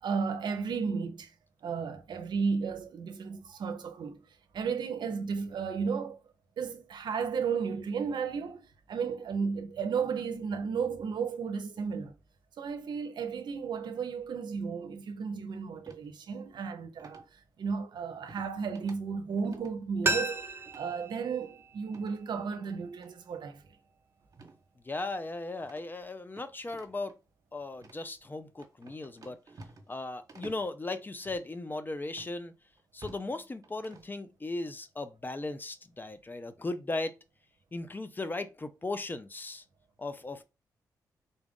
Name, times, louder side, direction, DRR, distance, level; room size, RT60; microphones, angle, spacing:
voice 1, 0.0-1.3 1.6-4.2 4.5-6.2 6.6-12.1 12.6-23.6, right 5 dB, 75° right, 0.7 m, -34 dB
sound 1, 15.9-16.1 17.0-17.3 18.3-18.5 18.7-19.0 19.3-19.7 20.7-20.9 21.9-22.2 23.0-23.1 24.3-24.6 24.9-25.0 25.6-27.1 27.7-28.0 28.6-30.0 30.3-30.7 31.2-31.4 32.2-32.3 32.8-33.3 33.6-34.1, right 3 dB, 50° right, 1.2 m, -51 dB
sound 2, 20.0-22.8 23.1-23.2, right 2 dB, 30° right, 0.6 m, -35 dB
voice 2, 24.8-27.1 27.5-29.4 29.9-32.5 32.9-37.2 37.7-39.6 40.0-40.4, left 2 dB, 25° left, 0.5 m, -37 dB
4.0 x 2.4 x 3.6 m
cardioid pair, 65°, 8 cm